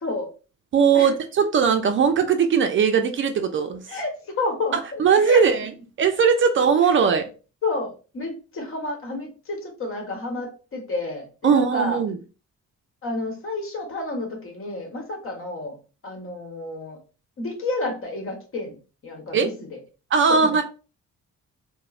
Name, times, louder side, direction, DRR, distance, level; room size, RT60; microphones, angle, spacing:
voice 1, 0.7-3.8 5.0-5.7 6.0-7.3 11.4-12.2 19.3-19.5 20.1-20.6, right 6 dB, 40° right, 0.4 m, -19 dB
voice 2, 3.9-5.4 6.6-7.1 7.6-12.0 13.0-15.8 16.0-17.0 17.4-18.8 19.0-19.8 20.3-20.6, left 2 dB, 45° left, 1.1 m, -30 dB
3.0 x 2.1 x 2.3 m
cardioid pair, 90°, 30 cm